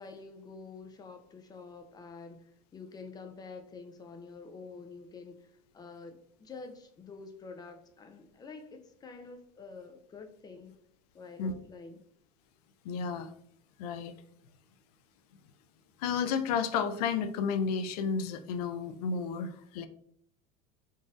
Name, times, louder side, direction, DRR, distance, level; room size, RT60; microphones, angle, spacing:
voice 1, 0.0-10.7 11.1-12.0, left 4 dB, 20° left, 5 dB, 0.4 m, -48 dB
voice 2, 12.8-13.3 13.8-14.1 16.0-19.9, left 6 dB, 75° left, 9 dB, 0.5 m, -32 dB
3.9 x 2.5 x 2.4 m, 0.67 s
supercardioid pair, 115°, 20 cm